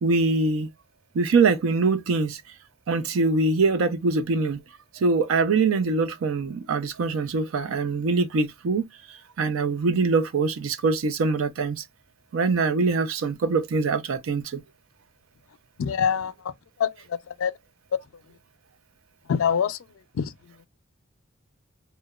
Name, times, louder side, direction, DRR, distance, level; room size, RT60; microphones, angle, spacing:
voice 1, 0.0-0.7 1.1-2.4 2.9-4.6 4.9-11.8 12.3-14.6, right 4 dB, 90° right, 0.4 m, -23 dB
voice 2, 15.8-16.3 16.8-16.9 17.3-17.5 19.3-19.8 20.2-20.3, left 7 dB, 90° left, 0.4 m, -24 dB
2.8 x 2.1 x 2.2 m
head